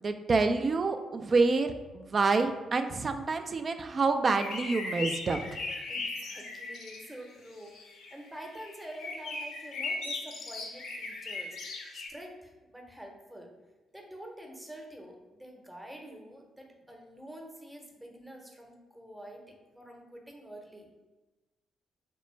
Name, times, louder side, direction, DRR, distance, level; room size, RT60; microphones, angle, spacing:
voice 1, 0.0-5.4, right 3 dB, 40° right, 7 dB, 0.3 m, -27 dB
sound 1, 4.3-7.2 7.6-12.1, left 3 dB, 60° left, 0.5 m, -38 dB
voice 2, 5.9-13.5 13.9-20.9, right 1 dB, 10° right, 1 dB, 0.8 m, -47 dB
3.2 x 2.9 x 3.1 m, 1.2 s
figure-of-eight pair, 40°, 0 cm